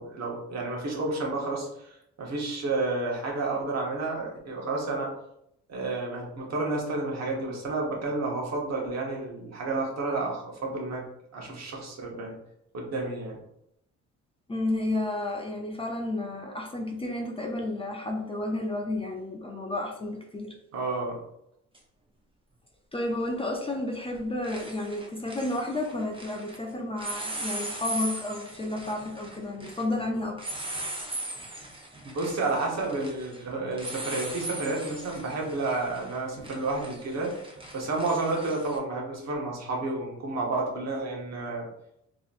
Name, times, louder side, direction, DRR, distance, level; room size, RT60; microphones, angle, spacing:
voice 1, 0.0-5.1 5.7-11.0 11.3-12.3 12.7-13.4 20.7-21.2 32.0-37.3 37.7-41.7, right 3 dB, 60° right, -2 dB, 1.2 m, -31 dB
voice 2, 14.5-20.5 22.9-30.4, left 2 dB, 20° left, 1 dB, 0.5 m, -31 dB
sound 1, 21.7-21.8 23.6-23.9 24.1-26.6 27.0-38.8, right 2 dB, 15° right, 0.8 m, -39 dB
3.8 x 3.0 x 2.5 m, 0.79 s
cardioid pair, 90°, 30 cm